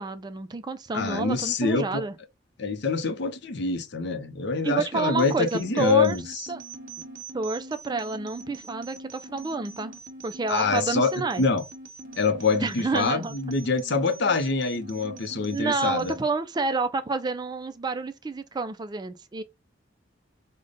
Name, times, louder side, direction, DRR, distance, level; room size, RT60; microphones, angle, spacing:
voice 1, 0.0-2.1 4.6-6.2 6.5-6.6 7.3-9.9 10.2-11.4 12.6-13.4 15.5-19.4, right 3 dB, 20° right, 0.3 m, -29 dB
voice 2, 0.9-2.0 2.6-6.2 10.5-11.1 11.4-11.6 12.2-16.1, left 4 dB, 60° left, 0.6 m, -25 dB
sound 1, 5.2-16.2, right 3 dB, 50° right, 1.1 m, -43 dB
5.0 x 2.1 x 3.8 m
head